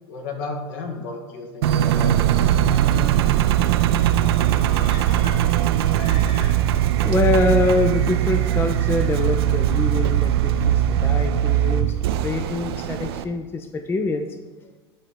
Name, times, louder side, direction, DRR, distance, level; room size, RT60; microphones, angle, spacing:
voice 1, 0.1-3.4, left 3 dB, 60° left, 3 dB, 1.3 m, -34 dB
Engine, 1.6-13.2, right 11 dB, 65° right, 0.4 m, -20 dB
sound 1, 4.7-6.9 7.2-7.3, left 3 dB, 40° left, 1.1 m, -40 dB
voice 2, 7.0-12.0 12.2-14.3, left 3 dB, 15° left, 8 dB, 0.4 m, -24 dB
10.5 x 3.9 x 4.3 m, 1.3 s
figure-of-eight pair, 80°, 14 cm